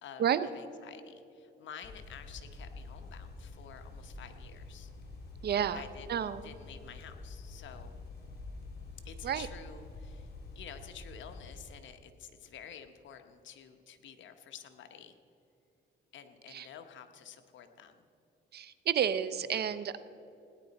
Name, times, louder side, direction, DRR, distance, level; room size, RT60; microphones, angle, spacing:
voice 1, 0.0-4.9 5.7-8.0 9.0-15.2 16.1-18.1 19.5-19.7, left 8 dB, 70° left, 7 dB, 1.1 m, -50 dB
sound 1, 1.8-11.6, left 3 dB, 55° left, 3.0 m, -47 dB
voice 2, 5.4-5.8 6.1-6.4 9.2-9.5 16.5-16.7 18.5-20.0, right 9 dB, 55° right, 14 dB, 0.6 m, -30 dB
17.5 x 10.0 x 4.2 m, 2.7 s
cardioid pair, 90°, 20 cm